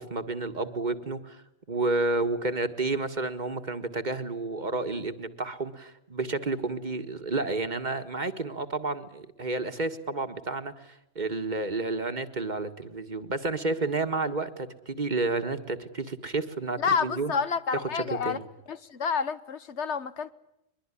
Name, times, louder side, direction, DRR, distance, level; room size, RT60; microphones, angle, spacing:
voice 1, 0.0-17.3 17.7-18.4, right 3 dB, 40° right, 1.8 m, -31 dB
voice 2, 16.8-18.4 18.7-20.3, left 6 dB, 85° left, 1.5 m, -29 dB
23.0 x 23.0 x 10.0 m
omnidirectional pair, 1.1 m